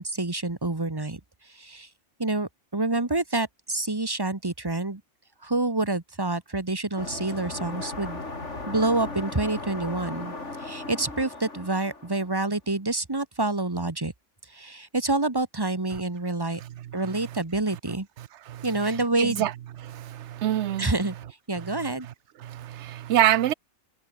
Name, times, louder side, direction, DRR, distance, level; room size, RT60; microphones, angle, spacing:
voice 1, 0.0-1.9 2.2-5.0 5.4-8.2 8.7-14.1 14.5-16.6 16.9-18.1 18.6-19.5 20.8-21.1 21.5-22.1, right 2 dB, 15° right, 1.4 m, -27 dB
sound 1, 7.0-12.5, left 2 dB, 55° left, 4.1 m, -37 dB
voice 2, 18.5-19.5 19.8-20.9 21.6-22.1 22.4-23.5, right 12 dB, 65° right, 0.9 m, -27 dB
omnidirectional pair, 1.4 m